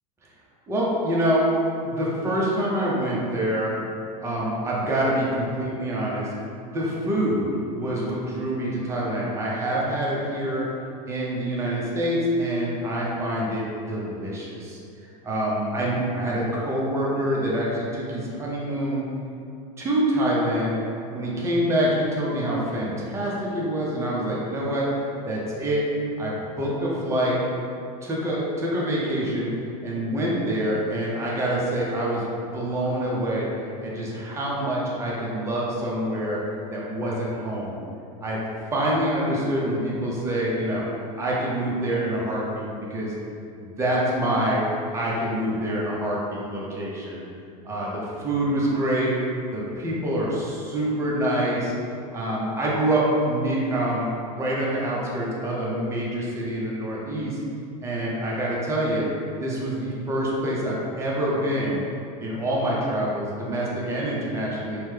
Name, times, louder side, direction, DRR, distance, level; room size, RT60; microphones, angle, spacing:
voice 1, 0.7-1.5 1.8-3.7 4.2-6.3 6.7-10.6 11.1-19.0 19.8-20.8 21.1-24.9 25.3-25.8 26.2-27.4 28.0-29.5 29.8-32.2 32.5-33.5 33.8-36.4 36.7-37.8 38.2-38.4 38.7-40.8 41.2-43.1 43.5-44.6 44.9-47.2 47.6-49.1 49.5-51.7 52.1-57.4 57.8-59.0 59.4-61.8 62.2-64.8, right 1 dB, 15° right, -5 dB, 0.6 m, -26 dB
2.9 x 2.1 x 3.3 m, 2.5 s
hypercardioid pair, 105°, 19 cm